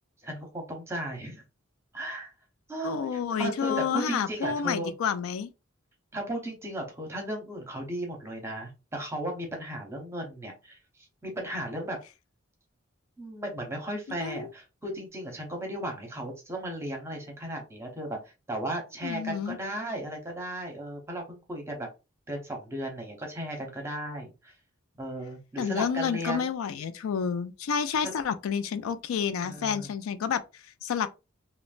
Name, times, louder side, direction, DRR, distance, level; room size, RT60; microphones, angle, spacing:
voice 1, 0.2-1.4 1.9-2.3 2.7-4.9 6.1-10.8 11.2-12.0 13.2-21.9 22.3-24.5 25.0-26.5 28.0-28.1 29.4-29.9, right 1 dB, 15° right, 0.7 m, -35 dB
voice 2, 2.8-5.5 14.1-14.5 19.0-19.6 25.6-31.1, left 7 dB, 85° left, 0.3 m, -30 dB
3.1 x 2.0 x 2.4 m
head